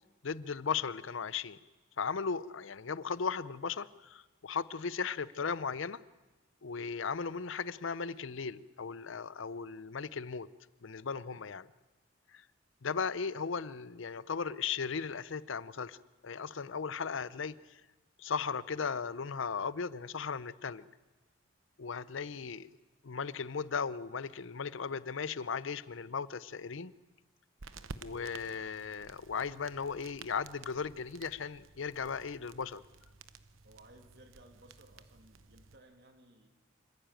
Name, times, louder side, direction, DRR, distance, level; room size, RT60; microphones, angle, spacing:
voice 1, 0.2-1.6 2.0-6.0 6.6-10.5 10.8-11.7 12.3-12.4 12.8-16.0 16.2-17.8 18.2-20.9 21.8-22.7 23.0-26.9 28.0-32.8, left 5 dB, 70° left, 18 dB, 0.6 m, -37 dB
sound 1, 27.6-35.8, right 4 dB, 85° right, 1.0 m, -53 dB
voice 2, 33.6-36.5, right 1 dB, 55° right, 4 dB, 2.6 m, -59 dB
26.0 x 15.0 x 9.0 m, 1.2 s
head